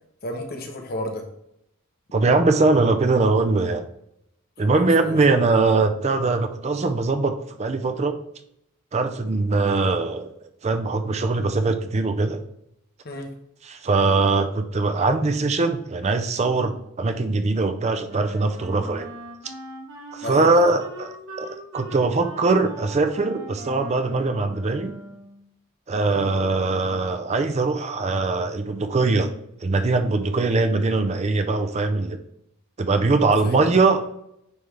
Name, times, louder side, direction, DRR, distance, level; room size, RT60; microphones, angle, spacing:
voice 1, 0.2-1.2 4.6-5.4 13.0-13.3 20.2-20.7 26.1-26.3 33.2-33.8, left 1 dB, 45° left, 3 dB, 1.0 m, -33 dB
voice 2, 2.1-3.8 4.6-8.1 8.9-10.3 10.6-12.4 13.7-19.1 20.1-21.5 21.7-24.9 25.9-29.3 29.6-32.2 32.8-34.0, right 3 dB, 30° right, 7 dB, 0.4 m, -21 dB
Wind instrument woodwind instrument, 18.1-25.5, right 1 dB, 65° right, 1.7 m, -40 dB
9.4 x 3.5 x 3.3 m, 0.78 s
head